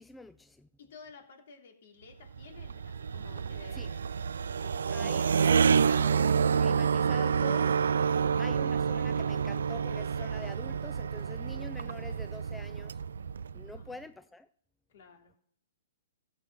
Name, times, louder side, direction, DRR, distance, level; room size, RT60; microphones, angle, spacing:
voice 1, 0.0-0.7 3.7-3.9 4.9-5.9 6.6-7.8 8.4-13.0 13.5-14.5, left 2 dB, 5° left, 0.4 m, -46 dB
voice 2, 0.8-6.7 8.2-8.5 13.8-14.0 14.9-15.3, left 5 dB, 60° left, 2.9 m, -53 dB
sound 1, 2.3-13.9, right 6 dB, 80° right, 0.4 m, -28 dB
14.0 x 7.3 x 5.4 m
hypercardioid pair, 135°, 0 cm